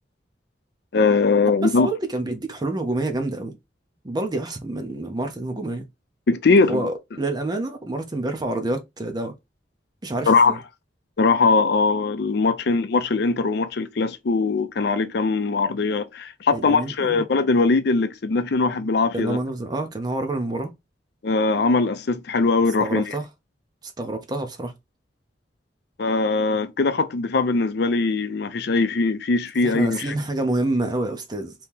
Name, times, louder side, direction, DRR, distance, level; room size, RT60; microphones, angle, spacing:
voice 1, 0.9-1.9 6.3-6.9 10.3-10.5 11.2-19.4 21.2-23.0 26.0-30.1, left 4 dB, 60° left, 0.5 m, -21 dB
voice 2, 1.4-3.6 4.0-5.8 6.7-9.3 10.0-10.6 16.5-17.2 19.1-20.7 22.8-23.3 23.8-24.7 29.6-31.5, right 2 dB, 25° right, 0.5 m, -27 dB
2.9 x 2.8 x 3.5 m
head